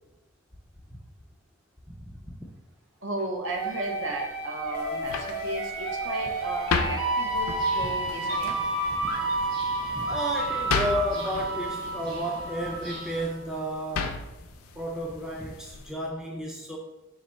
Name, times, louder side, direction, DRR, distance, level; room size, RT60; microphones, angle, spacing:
voice 1, 2.0-2.5 9.0-9.1 9.9-14.2 14.8-16.8, equal, 5° right, -1 dB, 0.3 m, -32 dB
voice 2, 3.0-8.6, right 1 dB, 60° right, 2 dB, 0.6 m, -34 dB
sound 1, 3.5-13.2, right 2 dB, 80° right, 1.1 m, -30 dB
sound 2, 4.7-15.9, left 5 dB, 80° left, 0.4 m, -36 dB
sound 3, 7.5-13.3, equal, 20° right, 1.2 m, -45 dB
4.1 x 2.6 x 4.2 m, 0.99 s
head